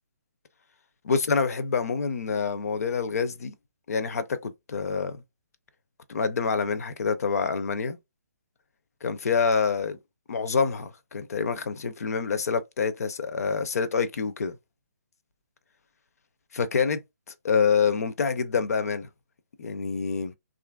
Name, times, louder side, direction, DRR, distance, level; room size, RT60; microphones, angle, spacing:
voice 1, 1.0-3.5 3.9-5.2 6.1-8.0 9.0-10.0 10.3-14.5 16.5-17.0 17.4-19.1 19.6-20.3, left 5 dB, 65° left, 0.5 m, -26 dB
2.9 x 2.5 x 2.2 m
hypercardioid pair, 150°, 9 cm